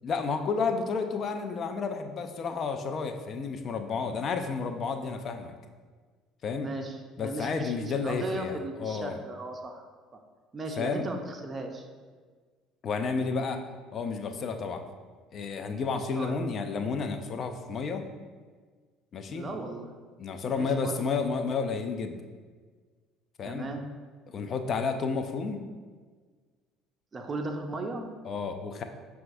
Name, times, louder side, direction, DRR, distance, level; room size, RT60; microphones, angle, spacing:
voice 1, 0.0-5.5 6.4-6.7 7.2-9.2 10.8-11.1 12.8-13.6 13.9-14.8 15.3-18.1 19.1-19.5 20.2-22.2 23.4-23.7 24.3-25.6 28.2-28.8, left 5 dB, 50° left, 7 dB, 0.4 m, -31 dB
voice 2, 6.6-9.8 10.5-11.9 16.1-16.4 19.3-19.9 20.4-21.0 23.4-23.8 27.1-28.1, right 2 dB, 30° right, 3 dB, 0.4 m, -36 dB
5.7 x 2.4 x 2.5 m, 1.5 s
hypercardioid pair, 65°, 0 cm